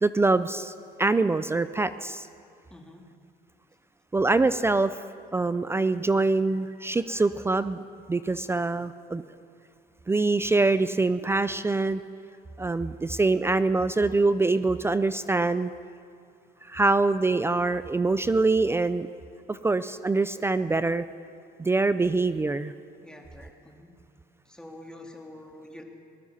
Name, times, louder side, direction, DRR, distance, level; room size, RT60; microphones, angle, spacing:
voice 1, 0.0-0.7 1.0-2.3 4.1-5.0 5.3-9.2 10.1-12.0 12.6-15.7 16.7-19.1 19.5-21.0 21.6-22.7, right 3 dB, 15° right, 13 dB, 0.4 m, -24 dB
voice 2, 2.7-3.0 23.0-23.9 24.5-25.8, left 1 dB, 5° left, 2 dB, 1.9 m, -46 dB
19.0 x 12.5 x 5.6 m, 2.4 s
cardioid pair, 110°, 17 cm